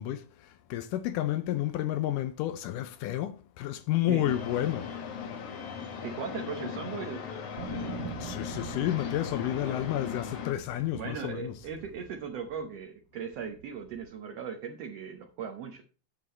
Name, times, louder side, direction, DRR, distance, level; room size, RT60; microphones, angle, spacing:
voice 1, 0.0-4.9 8.2-11.5, left 13 dB, 80° left, 2.2 m, -31 dB
sound 1, 4.3-10.5, left 7 dB, 60° left, 1.9 m, -38 dB
voice 2, 6.0-7.3 9.6-9.8 10.9-15.8, right 6 dB, 65° right, 1.8 m, -38 dB
sound 2, 7.6-12.8 13.3-14.1, right 6 dB, 90° right, 2.8 m, -44 dB
8.4 x 7.5 x 4.3 m
omnidirectional pair, 3.7 m